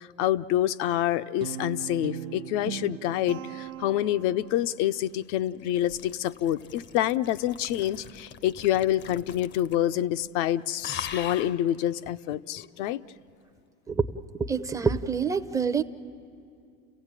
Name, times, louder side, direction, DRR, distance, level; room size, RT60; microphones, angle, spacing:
voice 1, 0.0-13.0, left 12 dB, 65° left, 12 dB, 0.7 m, -27 dB
Guitar, 1.4-4.7, right 10 dB, 65° right, 0.9 m, -39 dB
sound 1, 4.2-10.0 10.2-10.5 10.8-11.6 12.6-12.7, left 8 dB, 30° left, 0.6 m, -43 dB
voice 2, 14.3-15.8, right 5 dB, 10° right, 8 dB, 0.6 m, -26 dB
30.0 x 16.0 x 9.0 m, 2.5 s
supercardioid pair, 105°, 39 cm